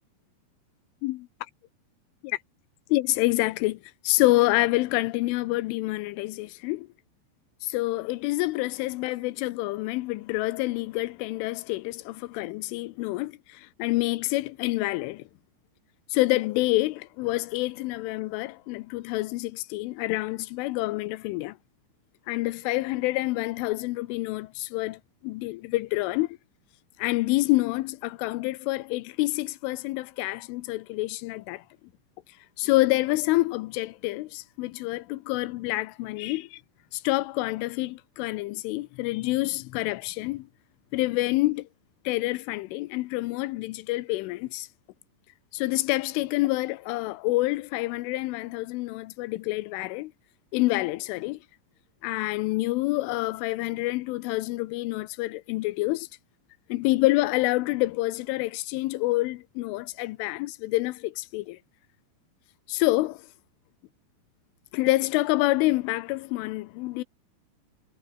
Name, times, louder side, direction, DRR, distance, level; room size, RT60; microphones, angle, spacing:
voice 1, 2.9-6.9 7.6-15.3 16.1-21.6 22.3-26.4 27.0-31.6 32.6-36.6 36.9-40.5 40.9-41.7 42.1-44.7 45.5-50.1 50.5-51.4 52.0-56.1 56.7-61.6 62.7-63.3 64.7-67.0, left 20 dB, 90° left, 3.3 m, -27 dB
omnidirectional pair, 5.5 m